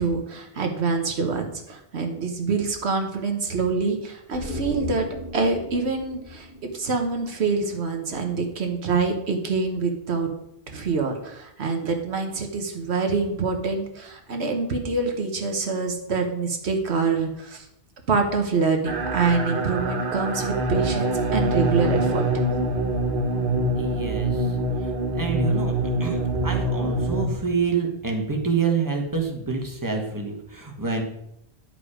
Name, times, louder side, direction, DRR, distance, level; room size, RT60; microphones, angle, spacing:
voice 1, 0.0-5.1 5.3-6.5 6.7-10.3 10.7-17.7 18.1-22.4, right 4 dB, 75° right, 4 dB, 1.3 m, -25 dB
sound 1, 4.3-7.7 8.0-8.1, left 2 dB, 75° left, 2.5 m, -37 dB
sound 2, 18.8-27.3, right 1 dB, 55° right, 1.1 m, -24 dB
voice 2, 23.7-31.0, right 5 dB, 15° right, 2 dB, 1.4 m, -28 dB
10.5 x 5.3 x 4.9 m, 0.80 s
omnidirectional pair, 1.1 m